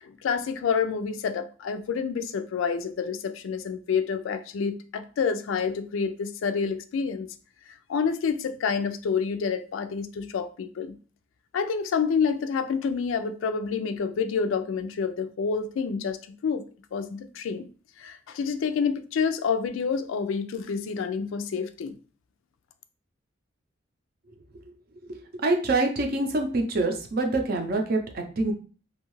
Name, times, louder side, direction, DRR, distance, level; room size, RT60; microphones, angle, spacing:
voice 1, 0.0-7.3 7.9-10.9 11.5-16.6 16.9-17.7 18.0-22.0, left 6 dB, 85° left, 0.3 m, -28 dB
voice 2, 25.0-28.5, right 2 dB, 50° right, 0.5 m, -26 dB
2.6 x 2.3 x 3.0 m
head